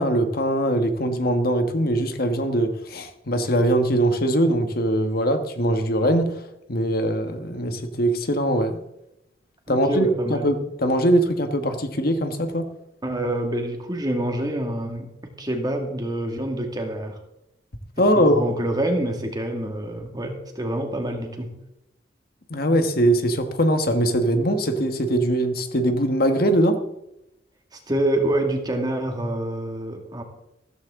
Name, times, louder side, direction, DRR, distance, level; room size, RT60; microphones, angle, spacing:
voice 1, 0.0-6.3 6.7-8.8 9.7-12.7 18.0-18.4 22.5-26.8, right 1 dB, 55° left, 7 dB, 1.4 m, -21 dB
voice 2, 9.7-10.5 13.0-17.2 18.1-21.5 27.7-30.2, right 1 dB, 20° right, 3 dB, 2.1 m, -27 dB
15.0 x 14.0 x 3.7 m, 0.85 s
head